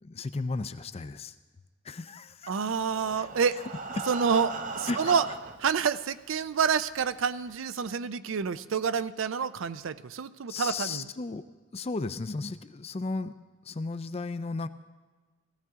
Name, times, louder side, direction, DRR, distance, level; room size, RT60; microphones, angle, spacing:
voice 1, 0.0-1.3 1.8-2.5 3.1-3.3 4.0-4.1 4.9-5.1 10.5-11.4 11.7-13.3 13.7-14.7, left 3 dB, 30° left, 12 dB, 0.4 m, -34 dB
voice 2, 2.5-3.6 4.1-5.3 5.6-11.1, right 6 dB, 75° right, 14 dB, 0.5 m, -28 dB
Breathing, 2.8-5.7 6.5-6.6 6.9-7.0 7.5-7.6, right 3 dB, 40° right, 0.7 m, -38 dB
17.0 x 15.0 x 3.6 m, 1.3 s
head